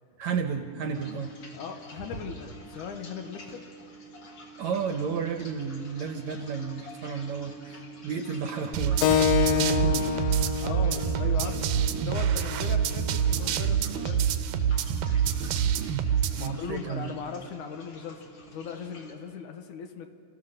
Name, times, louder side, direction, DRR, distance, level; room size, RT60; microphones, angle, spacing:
voice 1, 0.2-1.3 4.6-10.1 16.4-17.1, right 6 dB, 65° right, 6 dB, 2.0 m, -32 dB
sound 1, 0.9-19.1, right 1 dB, 45° left, 3.0 m, -47 dB
voice 2, 1.5-3.7 10.6-14.4 16.3-18.2 18.5-20.1, left 6 dB, 70° left, 6 dB, 2.3 m, -39 dB
sound 2, 8.7-16.5, right 8 dB, 90° right, 2.5 m, -26 dB
Keyboard (musical), 9.0-14.1, left 9 dB, 85° left, 2.6 m, -29 dB
29.5 x 15.5 x 6.6 m, 2.2 s
omnidirectional pair, 4.0 m